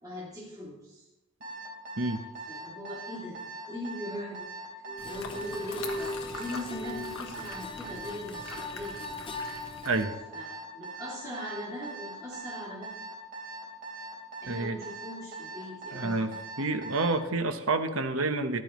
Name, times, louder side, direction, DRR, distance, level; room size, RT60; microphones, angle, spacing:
voice 1, 0.0-1.1 2.5-3.4 3.7-4.5 5.0-9.0 10.3-13.0 14.4-16.3, left 1 dB, 20° right, -7 dB, 2.7 m, -40 dB
Alarm, 1.4-17.2, right 3 dB, 40° right, 3.4 m, -41 dB
sound 1, 4.9-9.9, left 1 dB, 25° left, 0.8 m, -39 dB
sound 2, 5.0-10.0, left 4 dB, 70° left, 1.4 m, -43 dB
voice 2, 14.5-14.8 15.9-16.3 16.6-18.6, right 3 dB, 70° right, 8 dB, 1.0 m, -28 dB
14.0 x 11.5 x 3.1 m, 0.97 s
head